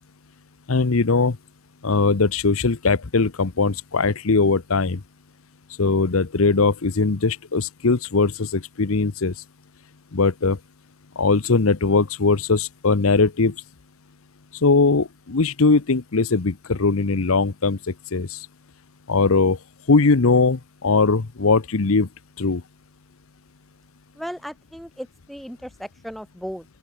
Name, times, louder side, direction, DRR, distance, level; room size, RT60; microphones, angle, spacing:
voice 1, 0.7-1.4 1.8-5.0 5.8-9.3 10.1-10.6 11.2-13.5 14.6-18.5 19.1-19.6 19.9-22.1 22.4-22.6, left 4 dB, 75° left, 0.9 m, -20 dB
voice 2, 24.1-26.7, equal, ahead, 7.4 m, -36 dB
open air
head